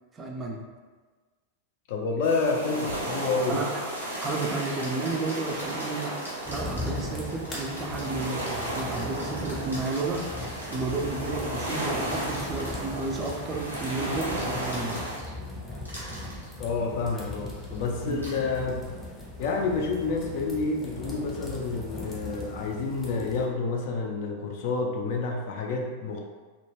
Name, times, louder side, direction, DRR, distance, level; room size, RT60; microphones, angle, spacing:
voice 1, 0.1-0.6 3.5-3.8 4.2-6.2 6.5-10.3 10.7-15.0 17.1-17.3 18.0-18.3, right 3 dB, 20° right, 0 dB, 0.4 m, -32 dB
voice 2, 1.9-3.6 16.6-18.9 19.4-26.2, left 4 dB, 50° left, 1 dB, 0.4 m, -29 dB
sound 1, 2.2-15.2, right 1 dB, 75° right, 0.6 m, -34 dB
sound 2, 2.8-3.0 3.9-11.0 12.0-15.5 15.8-16.5 17.6-17.8 18.1-18.4, equal, 85° left, 0.8 m, -44 dB
sound 3, 6.4-23.5, left 2 dB, 15° left, 0.7 m, -39 dB
2.2 x 2.0 x 3.2 m, 1.4 s
figure-of-eight pair, 90°, 0 cm